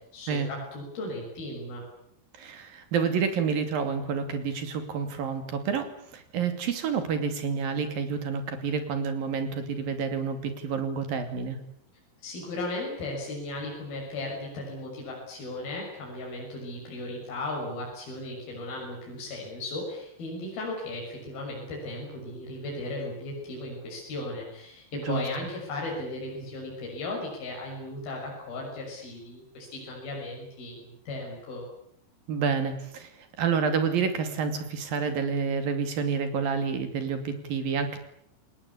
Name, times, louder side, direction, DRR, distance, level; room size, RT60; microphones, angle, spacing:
voice 1, 0.1-1.8 12.2-31.7, left 2 dB, 55° left, -2 dB, 8.3 m, -36 dB
voice 2, 2.4-11.6 24.9-25.2 32.3-33.1 33.4-38.0, right 6 dB, 55° right, 8 dB, 4.1 m, -29 dB
28.5 x 19.5 x 8.5 m, 0.70 s
omnidirectional pair, 5.3 m